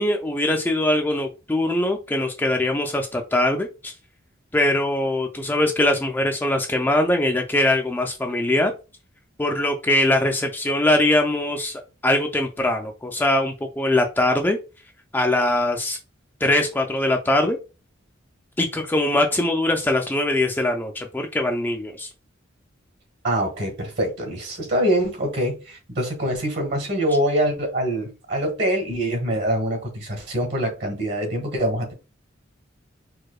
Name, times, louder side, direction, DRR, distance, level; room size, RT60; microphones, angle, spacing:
voice 1, 0.0-3.9 4.5-8.7 9.4-14.6 15.1-16.0 16.4-17.6 18.6-22.1, left 1 dB, 10° left, 3 dB, 0.3 m, -22 dB
voice 2, 23.2-31.9, right 1 dB, 55° right, 3 dB, 1.4 m, -24 dB
4.6 x 2.2 x 2.3 m, 0.30 s
head